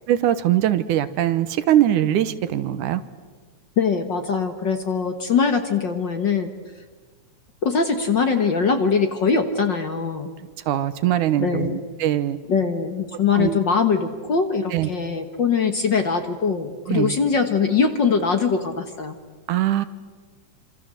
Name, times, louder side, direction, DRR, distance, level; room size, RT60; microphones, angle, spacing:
voice 1, 0.1-3.0 10.7-12.4 13.3-13.6 14.7-14.9 16.9-17.2 19.5-19.9, right 12 dB, 80° right, 13 dB, 2.6 m, -21 dB
voice 2, 3.8-6.5 7.6-10.3 11.4-11.8 12.5-19.1, left 5 dB, 50° left, 7 dB, 1.6 m, -22 dB
27.5 x 26.5 x 7.6 m, 1.4 s
omnidirectional pair, 3.5 m